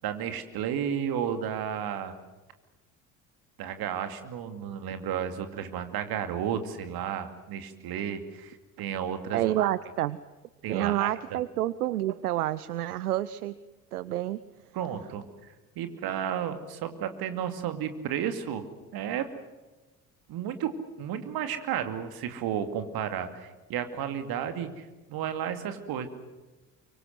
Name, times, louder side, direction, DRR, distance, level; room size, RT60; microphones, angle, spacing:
voice 1, 0.0-2.1 3.6-9.7 10.6-11.1 14.7-18.6 18.9-19.3 20.3-20.7 21.0-26.1, right 9 dB, 50° right, 8 dB, 2.6 m, -33 dB
voice 2, 9.3-10.2 10.7-13.5 13.9-14.4, right 14 dB, 75° right, 17 dB, 0.7 m, -28 dB
24.0 x 24.0 x 7.8 m, 1.1 s
figure-of-eight pair, 55°, 45 cm